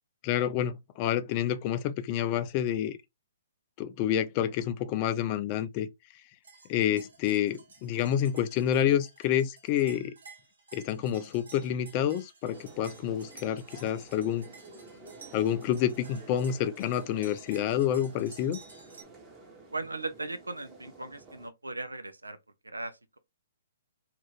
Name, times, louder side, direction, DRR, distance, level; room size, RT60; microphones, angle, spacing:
voice 1, 0.2-3.0 3.8-5.9 6.7-10.1 10.7-14.5 15.3-18.6, left 10 dB, 35° left, 0.4 m, -28 dB
sound 1, 6.4-19.0, right 4 dB, 70° right, 0.9 m, -53 dB
sound 2, 12.5-21.5, right 3 dB, 15° right, 0.9 m, -51 dB
voice 2, 19.7-22.4 22.6-23.2, right 2 dB, 85° right, 0.5 m, -38 dB
2.5 x 2.5 x 3.2 m
figure-of-eight pair, 125°, 0 cm